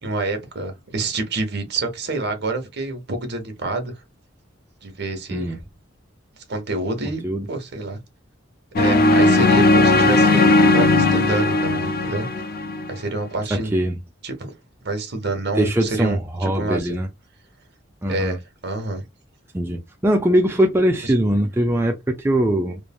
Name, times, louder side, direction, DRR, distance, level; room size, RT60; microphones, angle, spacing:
voice 1, 0.0-4.0 4.8-5.6 6.5-7.2 7.5-8.0 8.8-12.3 12.9-13.7 14.2-14.5 14.8-17.0 18.1-19.0, right 2 dB, 55° right, 1.0 m, -27 dB
sound 1, 8.8-12.9, left 2 dB, 50° left, 0.5 m, -17 dB
voice 2, 13.5-14.0 15.6-17.1 18.0-18.4 19.5-22.8, right 1 dB, 10° right, 0.4 m, -21 dB
3.1 x 2.2 x 2.3 m
head